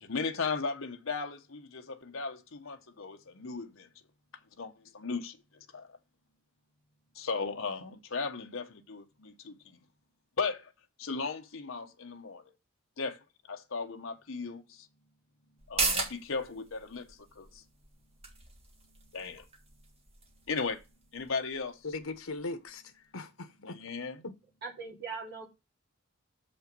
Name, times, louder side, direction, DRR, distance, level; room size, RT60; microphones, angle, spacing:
voice 1, 0.0-3.8 4.6-5.4 5.7-6.0 7.1-9.8 10.4-10.7 11.0-12.5 13.0-13.2 13.5-14.9 15.7-17.6 19.1-19.5 20.5-20.8 21.1-21.8 23.6-24.2, left 4 dB, 70° left, 1.0 m, -36 dB
sound 1, 15.6-22.7 23.1-23.2, right 3 dB, 30° right, 1.7 m, -38 dB
voice 2, 21.8-23.8 24.2-24.3, left 3 dB, 85° left, 1.2 m, -39 dB
voice 3, 24.6-25.5, right 4 dB, 50° right, 2.8 m, -40 dB
6.8 x 5.5 x 5.3 m
head